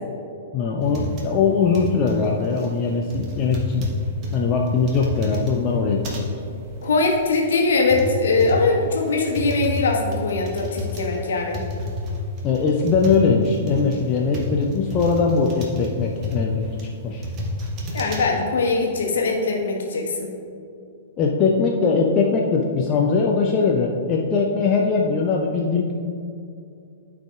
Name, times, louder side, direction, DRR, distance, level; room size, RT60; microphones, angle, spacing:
voice 1, 0.5-3.9 4.3-6.3 12.4-16.6 17.0-17.3 21.2-25.9, left 4 dB, 30° left, 0 dB, 0.5 m, -21 dB
sound 1, 0.8-18.3, left 2 dB, 35° right, 1.2 m, -31 dB
voice 2, 6.8-11.6 17.9-20.3, left 3 dB, 60° left, 0 dB, 1.2 m, -21 dB
12.5 x 4.8 x 2.4 m, 2.5 s
figure-of-eight pair, 105°, 0 cm